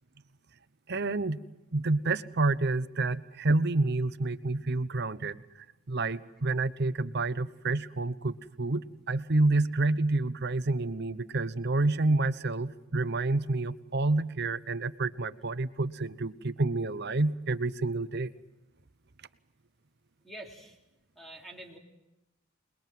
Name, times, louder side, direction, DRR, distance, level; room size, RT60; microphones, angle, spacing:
voice 1, 0.9-1.4 1.7-5.4 5.9-18.3, right 2 dB, 50° right, 14 dB, 0.9 m, -28 dB
voice 2, 20.2-20.8 21.2-21.8, right 1 dB, ahead, 1 dB, 3.5 m, -46 dB
28.0 x 21.0 x 7.6 m, 0.95 s
head